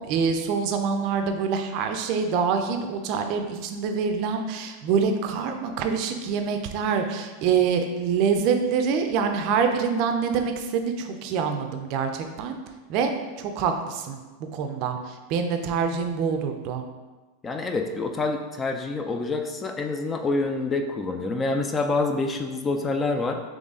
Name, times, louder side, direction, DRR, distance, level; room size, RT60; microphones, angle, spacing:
voice 1, 0.1-12.6 12.9-13.1 13.4-14.2 14.5-16.8, right 6 dB, 45° right, 5 dB, 0.5 m, -25 dB
voice 2, 17.4-23.4, left 3 dB, 15° left, 5 dB, 0.3 m, -27 dB
4.0 x 3.1 x 3.6 m, 1.2 s
supercardioid pair, 145°, 0 cm